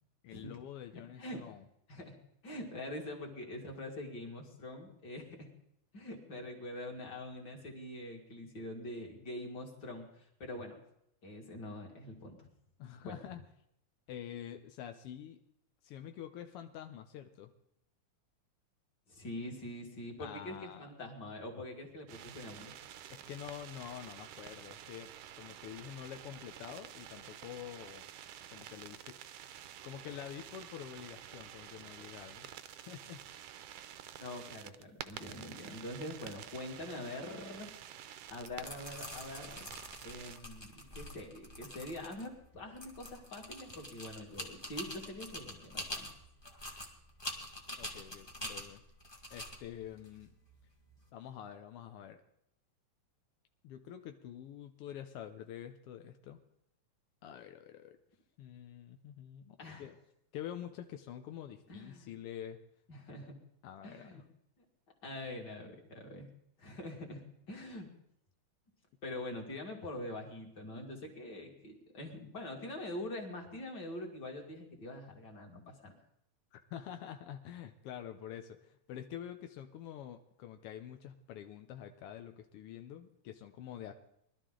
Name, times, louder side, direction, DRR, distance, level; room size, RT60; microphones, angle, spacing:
voice 1, 0.2-1.7 12.8-13.4 14.1-15.4 15.8-17.5 20.2-20.9 23.1-28.1 28.5-29.1 29.4-29.5 29.8-33.5 47.8-48.8 49.3-50.3 51.1-52.2 53.6-56.4 57.2-58.0 58.4-60.0 60.3-62.6 63.6-64.2 76.5-83.9, left 10 dB, 80° left, 7 dB, 1.3 m, -47 dB
voice 2, 0.9-1.5 1.9-2.1 2.4-5.5 5.9-10.8 11.2-12.5 13.0-13.2 19.1-22.7 34.2-37.7 38.3-39.8 40.0-46.1 59.6-59.9 61.7-62.1 62.9-63.4 63.8-64.2 65.0-66.3 66.6-67.9 69.0-75.9, left 1 dB, 35° left, 0 dB, 2.6 m, -44 dB
sound 1, 22.1-40.4, right 11 dB, 75° right, 1.4 m, -50 dB
sound 2, 38.3-51.0, left 1 dB, 15° left, 1.1 m, -46 dB
20.5 x 12.5 x 3.8 m, 0.77 s
omnidirectional pair, 3.4 m